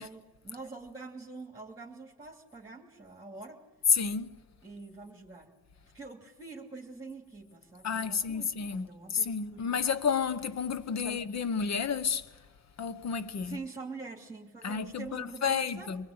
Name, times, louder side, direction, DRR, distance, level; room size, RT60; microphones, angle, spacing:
voice 1, 0.0-3.6 4.6-5.5 5.8-9.9 11.0-11.3 13.4-16.1, right 3 dB, 10° right, 2.7 m, -45 dB
voice 2, 3.9-4.4 7.8-12.3 12.8-13.6 14.6-16.1, left 6 dB, 55° left, 1.0 m, -31 dB
23.5 x 21.0 x 8.8 m
cardioid pair, 105°, 33 cm